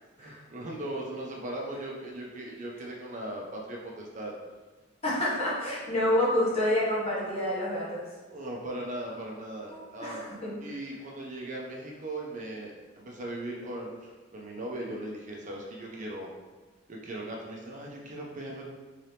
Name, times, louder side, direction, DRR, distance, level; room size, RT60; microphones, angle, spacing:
voice 1, 0.2-4.3 8.3-10.3 10.6-16.3 16.9-18.6, right 1 dB, 40° right, -2 dB, 0.5 m, -38 dB
voice 2, 5.0-8.1 9.7-10.5, left 1 dB, 35° left, -7 dB, 1.2 m, -28 dB
3.8 x 2.9 x 3.3 m, 1.3 s
head